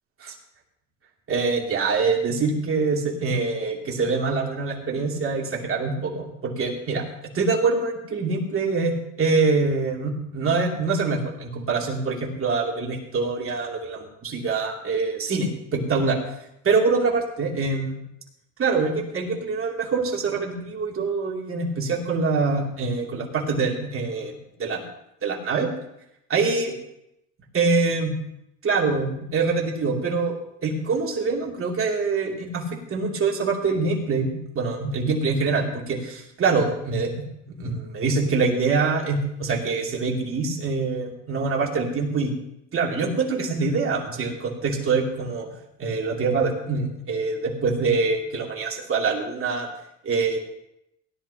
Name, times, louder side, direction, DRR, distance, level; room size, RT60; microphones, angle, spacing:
voice 1, 1.3-7.0 7.3-16.2 16.6-18.0 18.6-24.8 25.2-25.7 26.3-26.7 27.5-28.1 28.6-30.3 30.6-32.6 32.9-37.1 37.5-42.3 42.7-45.5 45.8-49.7 50.0-50.4, right 4 dB, 40° right, -1 dB, 2.8 m, -24 dB
17.5 x 10.5 x 2.9 m, 0.82 s
cardioid pair, 110°, 35 cm